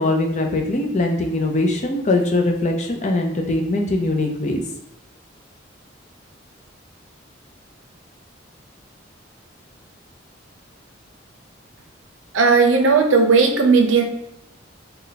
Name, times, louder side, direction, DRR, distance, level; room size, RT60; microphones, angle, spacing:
voice 1, 0.0-4.6, left 2 dB, 35° left, 2 dB, 0.5 m, -21 dB
voice 2, 12.3-14.0, right 4 dB, 85° right, 4 dB, 0.6 m, -15 dB
3.3 x 2.2 x 3.9 m, 0.82 s
head